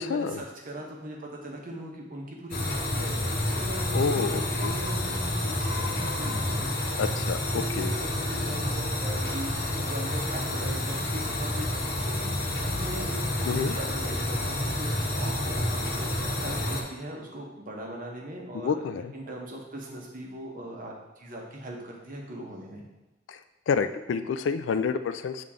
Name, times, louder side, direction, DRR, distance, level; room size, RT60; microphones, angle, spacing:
voice 1, 0.0-6.7 7.5-22.9, right 1 dB, 50° right, -1 dB, 1.2 m, -40 dB
sound 1, 2.5-16.8, left 1 dB, 60° left, 1.1 m, -29 dB
voice 2, 3.9-4.7 7.0-7.9 13.4-13.8 18.5-19.1 23.3-23.4 23.7-25.4, left 5 dB, 85° left, 10 dB, 0.3 m, -29 dB
7.2 x 3.7 x 3.7 m, 1.1 s
head